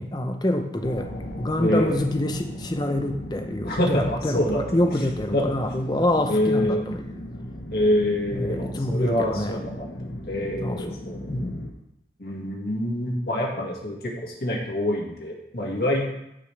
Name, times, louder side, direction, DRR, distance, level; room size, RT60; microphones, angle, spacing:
voice 1, 0.0-7.0 8.3-9.6 10.6-11.0 11.3-11.6, left 1 dB, 25° left, 5 dB, 0.7 m, -26 dB
sound 1, 0.8-11.7, left 1 dB, 75° left, 1.3 m, -37 dB
voice 2, 1.6-2.0 3.6-4.6 5.3-5.5 6.2-6.9 7.7-9.9 10.3-11.3 12.2-16.1, left 1 dB, 55° left, -2 dB, 2.0 m, -26 dB
15.0 x 5.3 x 3.4 m, 0.84 s
head